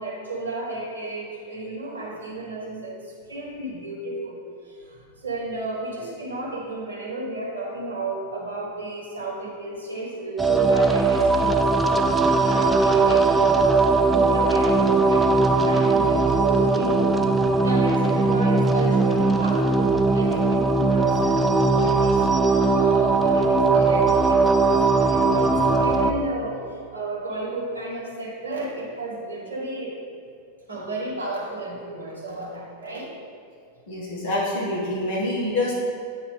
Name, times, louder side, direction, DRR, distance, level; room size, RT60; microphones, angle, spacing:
voice 1, 0.0-2.9 3.3-4.4 4.9-13.3 14.1-15.2 15.6-17.2 17.5-22.2 22.5-26.6 26.9-29.9 30.7-33.1, right 2 dB, 70° right, -4 dB, 1.3 m, -32 dB
sound 1, 10.4-26.1, right 3 dB, 10° right, 0.3 m, -19 dB
voice 2, 33.9-35.7, left 1 dB, 55° left, -5 dB, 1.5 m, -26 dB
8.3 x 2.9 x 4.7 m, 2.4 s
figure-of-eight pair, 90°, 0 cm